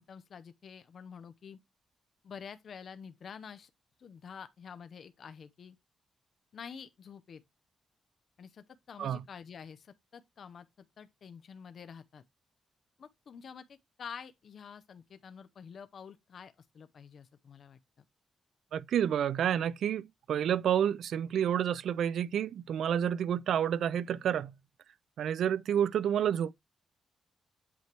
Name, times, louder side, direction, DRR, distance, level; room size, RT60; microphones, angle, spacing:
voice 1, 0.0-1.6 2.2-3.7 4.0-5.8 6.5-7.4 8.4-12.2 13.0-17.8, left 7 dB, 50° left, 0.6 m, -48 dB
voice 2, 18.7-24.5 25.2-26.5, right 9 dB, 80° right, 0.3 m, -29 dB
8.3 x 3.2 x 4.4 m
wide cardioid pair, 180°, 0 cm